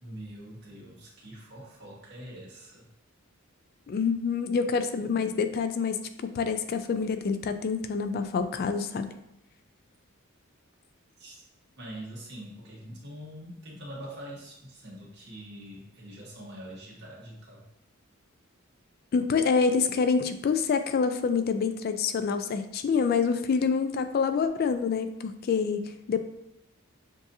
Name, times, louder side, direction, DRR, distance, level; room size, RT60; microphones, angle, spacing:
voice 1, 0.0-2.8 11.2-11.4 11.8-17.6, right 1 dB, 55° right, -5 dB, 1.5 m, -44 dB
voice 2, 3.9-9.2 19.1-26.2, left 5 dB, 45° left, 9 dB, 0.3 m, -27 dB
7.0 x 2.7 x 2.7 m, 0.81 s
head